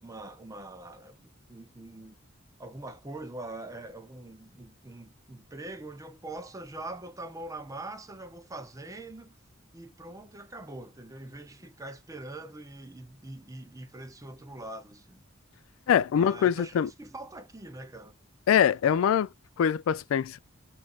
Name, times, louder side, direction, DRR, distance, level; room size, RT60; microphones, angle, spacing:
voice 1, 0.0-2.1 2.6-9.4 9.7-15.2 16.1-18.2, right 2 dB, 15° right, 0.6 m, -43 dB
voice 2, 15.9-16.9 18.5-19.3 19.6-20.4, left 8 dB, 80° left, 0.3 m, -23 dB
5.1 x 2.5 x 2.4 m
head